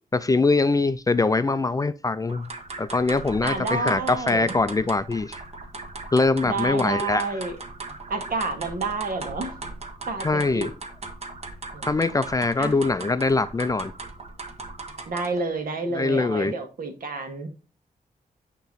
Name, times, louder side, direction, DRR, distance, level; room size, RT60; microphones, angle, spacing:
voice 1, 0.1-2.5 2.8-5.4 6.1-7.4 10.2-10.7 11.9-13.9 15.9-16.5, left 3 dB, 25° left, 0.4 m, -23 dB
sound 1, 2.3-15.5, right 3 dB, 45° right, 1.2 m, -38 dB
voice 2, 3.4-4.5 6.4-7.5 8.1-9.5 10.1-10.7 11.7-11.9 12.6-12.8 15.1-17.5, right 3 dB, 70° right, 1.6 m, -29 dB
9.1 x 3.0 x 4.0 m
cardioid pair, 90°, 15 cm